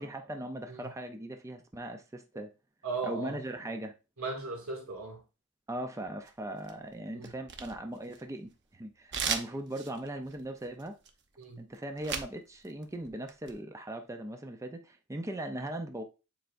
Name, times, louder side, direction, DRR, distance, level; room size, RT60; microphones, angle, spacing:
voice 1, 0.0-2.5 3.0-3.9 5.7-11.0 11.6-16.0, right 1 dB, 15° right, 0.5 m, -39 dB
voice 2, 2.8-3.4 4.2-5.2 7.1-7.3 11.4-11.6, right 3 dB, 85° right, 2.2 m, -37 dB
sound 1, 6.3-6.9 7.2-8.5 9.1-12.4 12.6-13.5, right 6 dB, 55° right, 0.8 m, -37 dB
9.2 x 4.4 x 2.5 m
head